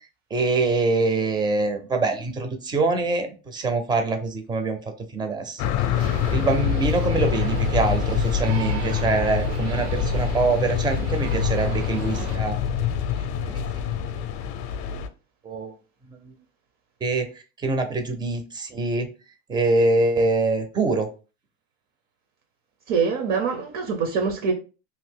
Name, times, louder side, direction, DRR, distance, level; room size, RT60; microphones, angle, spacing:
voice 1, 0.3-3.3 3.5-4.8 5.1-12.6 13.4-13.6 15.4-15.7 16.1-16.3 17.0-17.3 17.6-19.1 19.5-21.1, right 3 dB, 15° right, 0.5 m, -24 dB
sound 1, 5.6-15.1, left 8 dB, 55° left, 0.5 m, -25 dB
sound 2, 5.9-12.4, right 3 dB, 85° right, 1.1 m, -35 dB
voice 2, 22.9-24.5, right 5 dB, 55° right, 0.7 m, -24 dB
2.8 x 2.6 x 3.6 m
supercardioid pair, 135°, 34 cm